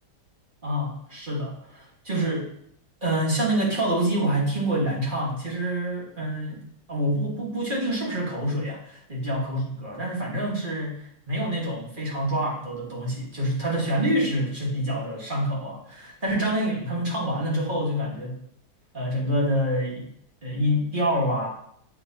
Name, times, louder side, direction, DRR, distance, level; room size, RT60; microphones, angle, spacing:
voice 1, 0.6-2.5 3.0-6.6 6.9-18.3 18.9-20.1 20.4-21.5, right 1 dB, 30° right, -4 dB, 1.6 m, -27 dB
7.8 x 4.9 x 2.8 m, 0.70 s
omnidirectional pair, 1.8 m